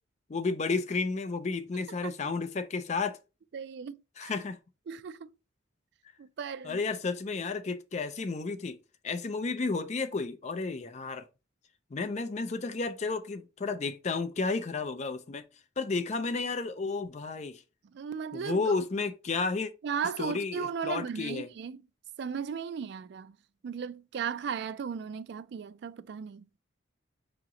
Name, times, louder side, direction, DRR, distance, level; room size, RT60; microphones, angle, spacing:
voice 1, 0.3-3.2 4.2-4.6 6.6-8.8 9.0-11.2 11.9-15.4 15.8-17.6 18.3-19.7 20.2-21.5, left 4 dB, 35° left, 0.4 m, -32 dB
voice 2, 3.5-4.3 4.9-5.3 6.2-6.8 17.9-18.7 19.8-21.8 22.2-23.4 23.6-26.5, right 6 dB, 60° right, 0.3 m, -36 dB
4.9 x 2.9 x 3.6 m
head